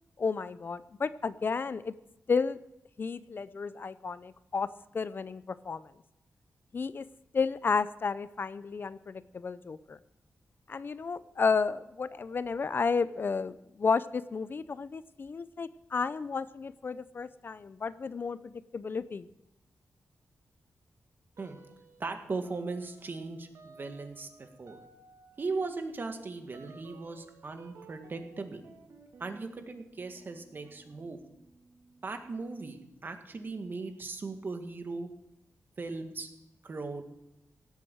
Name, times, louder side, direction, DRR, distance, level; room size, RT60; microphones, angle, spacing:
voice 1, 0.2-1.9 2.3-2.6 3.0-4.7 4.9-5.9 6.7-7.0 7.3-10.0 10.7-19.3, left 5 dB, 45° left, 15 dB, 0.5 m, -32 dB
sound 1, 21.4-22.1 22.4-32.8, right 4 dB, 85° right, 2.0 m, -57 dB
voice 2, 22.0-24.8 25.4-28.6 29.2-31.2 32.0-35.1 35.8-36.3 36.6-37.0, right 3 dB, 40° right, 6 dB, 1.8 m, -38 dB
17.0 x 8.3 x 7.8 m, 0.90 s
wide cardioid pair, 120°, 5 cm